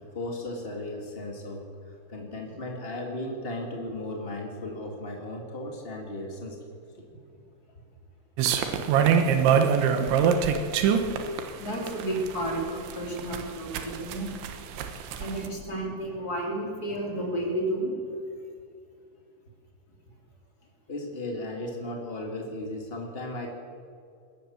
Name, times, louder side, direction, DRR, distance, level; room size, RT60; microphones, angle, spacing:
voice 1, 0.0-6.6 20.9-23.5, left 1 dB, 55° left, 0 dB, 0.6 m, -36 dB
sound 1, 8.4-15.5, right 7 dB, 80° right, 3.6 m, -24 dB
voice 2, 11.6-14.3 15.2-17.9, right 1 dB, 20° left, -1 dB, 3.8 m, -31 dB
21.5 x 18.0 x 7.3 m, 2.5 s
omnidirectional pair, 5.4 m